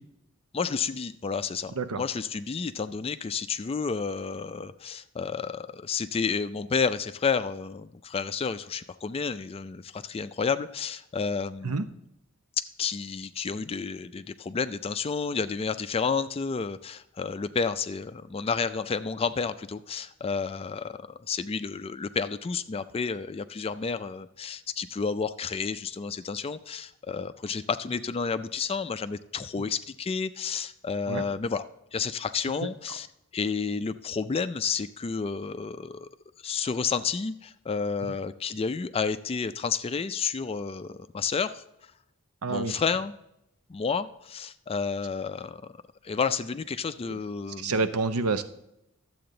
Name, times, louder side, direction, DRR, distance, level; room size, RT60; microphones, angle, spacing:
voice 1, 0.5-12.0 12.8-31.6 31.9-33.1 33.3-36.1 36.4-41.6 42.5-43.1 43.7-45.6 46.0-47.9, left 5 dB, 25° left, 12 dB, 0.3 m, -31 dB
voice 2, 42.4-42.8 47.0-47.2 47.6-48.4, right 3 dB, 80° right, 11 dB, 0.7 m, -28 dB
12.0 x 7.8 x 3.8 m, 0.83 s
head